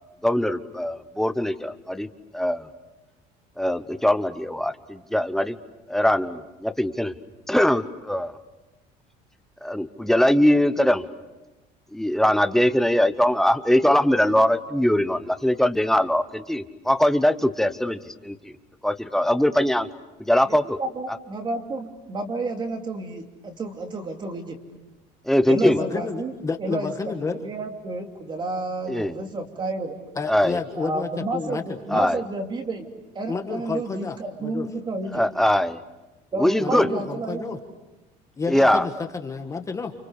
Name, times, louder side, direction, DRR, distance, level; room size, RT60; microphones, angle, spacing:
voice 1, 0.2-2.1 2.3-2.7 3.6-5.6 5.9-7.1 7.5-8.4 9.6-11.1 11.9-18.5 18.8-19.9 20.2-20.8 25.2-25.8 28.9-29.2 30.3-30.6 31.9-32.2 35.1-35.8 36.4-36.9 38.5-38.9, left 1 dB, ahead, 10 dB, 1.0 m, -21 dB
voice 2, 20.5-24.6 25.5-26.3 26.6-26.9 27.2-30.0 30.8-32.9 33.1-35.2 36.3-37.6, right 2 dB, 25° right, 4 dB, 2.8 m, -31 dB
voice 3, 25.6-27.4 30.1-32.1 33.3-34.7 36.6-37.6 38.4-39.9, left 4 dB, 20° left, 5 dB, 1.5 m, -30 dB
30.0 x 29.5 x 6.5 m, 1.1 s
cardioid pair, 160°, 17 cm